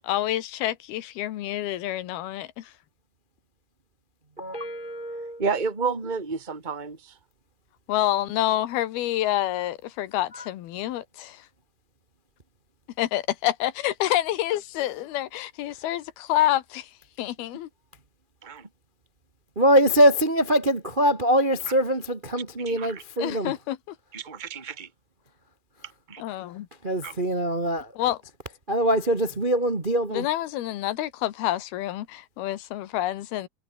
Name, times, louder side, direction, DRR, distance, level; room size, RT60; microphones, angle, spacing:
voice 1, 0.0-2.7 7.9-11.5 13.0-16.9 17.2-17.7 23.2-24.0 26.2-26.7 28.0-28.2 30.1-33.5, left 14 dB, 70° left, 3.1 m, -28 dB
voice 2, 4.4-5.4 10.3-10.4 19.5-23.5 26.8-27.9 28.7-30.3, equal, 85° right, 0.4 m, -23 dB
voice 3, 5.4-7.1 18.4-18.7 22.7-23.0 24.1-24.9 26.1-26.2 27.0-27.1, right 5 dB, 10° right, 3.0 m, -30 dB
omnidirectional pair, 4.8 m